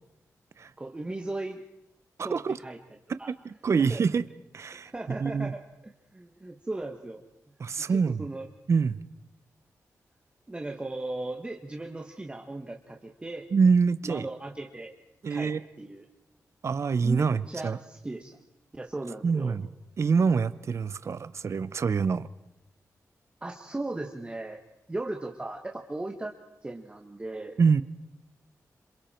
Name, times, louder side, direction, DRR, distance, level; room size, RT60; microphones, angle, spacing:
voice 1, 0.8-1.6 2.2-2.8 3.2-3.3 3.8-4.0 4.9-5.6 6.1-7.2 7.7-8.5 10.5-13.5 14.0-14.9 15.3-16.0 17.0-18.4 18.7-19.5 23.4-24.6 24.9-26.3 26.6-27.5, right 2 dB, 20° right, 2 dB, 1.6 m, -37 dB
voice 2, 2.2-2.6 3.3-4.2 4.5-5.5 7.6-8.3 8.7-9.0 13.5-14.3 15.2-15.6 16.6-17.8 19.2-19.7 20.0-22.3 27.6-27.8, right 5 dB, 55° right, 14 dB, 0.8 m, -25 dB
27.5 x 27.0 x 4.5 m, 0.89 s
wide cardioid pair, 115°, 6 cm